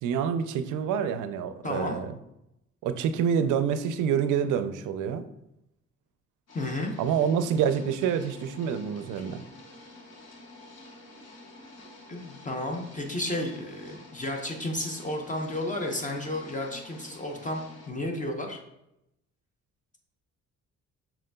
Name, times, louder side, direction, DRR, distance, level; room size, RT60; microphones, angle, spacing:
voice 1, 0.0-2.1 2.8-5.3 7.0-9.4, right 8 dB, 85° right, 11 dB, 0.5 m, -27 dB
voice 2, 1.6-2.0 6.5-6.9 11.8-18.6, left 1 dB, 25° left, 2 dB, 0.7 m, -32 dB
sound 1, 6.5-17.9, left 2 dB, 55° left, 1.3 m, -49 dB
6.0 x 3.8 x 2.2 m, 0.84 s
cardioid pair, 90°, 30 cm